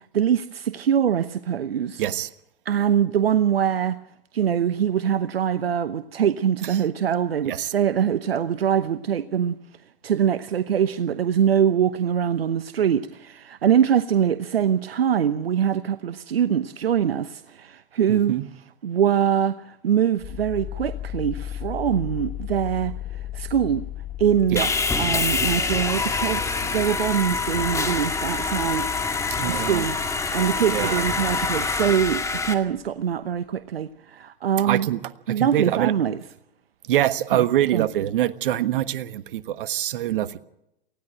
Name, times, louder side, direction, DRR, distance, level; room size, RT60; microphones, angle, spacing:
voice 1, 0.1-2.0 2.6-4.0 4.3-9.6 10.0-18.4 18.8-22.9 23.3-23.8 24.2-24.7 25.0-28.9 29.5-30.0 30.3-34.9 35.3-36.2 37.3-37.4 37.7-37.9, right 8 dB, 80° right, 1.0 m, -23 dB
voice 2, 2.0-2.3 7.4-7.7 18.1-18.4 24.5-24.7 29.3-29.9 30.7-31.1 34.6-35.0 35.3-35.9 36.9-40.4, right 12 dB, 60° right, 1.4 m, -24 dB
sound 1, 20.2-32.9, left 11 dB, 30° left, 2.1 m, -37 dB
Sawing, 24.6-32.5, left 4 dB, 10° left, 2.1 m, -26 dB
19.0 x 16.0 x 9.0 m
hypercardioid pair, 110°, 30 cm